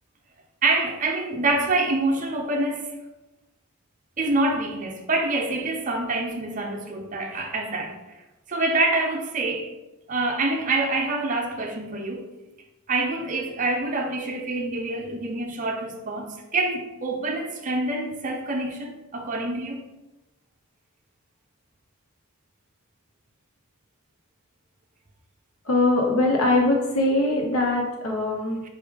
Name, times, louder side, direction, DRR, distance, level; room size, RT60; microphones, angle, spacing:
voice 1, 0.6-2.9 4.2-8.0 8.5-9.7 10.1-12.3 12.9-19.8, right 2 dB, 35° right, 0.5 m, -26 dB
voice 2, 25.6-28.6, left 2 dB, 70° left, 0.7 m, -22 dB
4.8 x 3.1 x 3.5 m
head